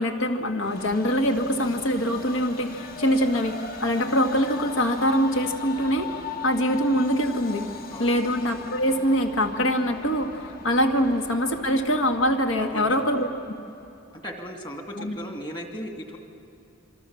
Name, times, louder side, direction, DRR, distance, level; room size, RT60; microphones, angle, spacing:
voice 1, 0.0-7.7 8.0-13.3 15.0-15.2, equal, 70° left, 5 dB, 2.0 m, -24 dB
Train, 0.6-14.1, left 5 dB, 45° left, 1.6 m, -40 dB
voice 2, 7.9-8.2 12.6-13.1 14.2-16.2, equal, 25° left, 3 dB, 2.4 m, -36 dB
26.5 x 24.5 x 7.2 m, 2.8 s
head